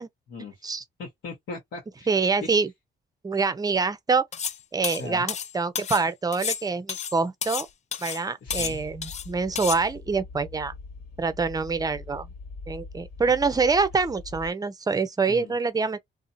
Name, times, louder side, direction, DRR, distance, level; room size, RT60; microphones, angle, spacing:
voice 1, 0.3-2.1 2.4-2.6 5.0-5.3 8.4-8.8 15.3-15.5, left 3 dB, 70° left, 1.1 m, -39 dB
voice 2, 2.1-2.7 3.2-4.2 4.7-7.7 8.0-10.7 11.2-12.3 12.7-16.0, right 4 dB, 20° right, 0.6 m, -25 dB
sound 1, 4.3-4.6 4.8-6.0 6.3-7.7 7.9-8.2 8.5-9.3 9.6-9.8, left 8 dB, 35° left, 0.4 m, -31 dB
sound 2, 8.5-14.5, left 4 dB, 55° left, 1.4 m, -42 dB
2.6 x 2.1 x 2.6 m
cardioid pair, 90°, 20 cm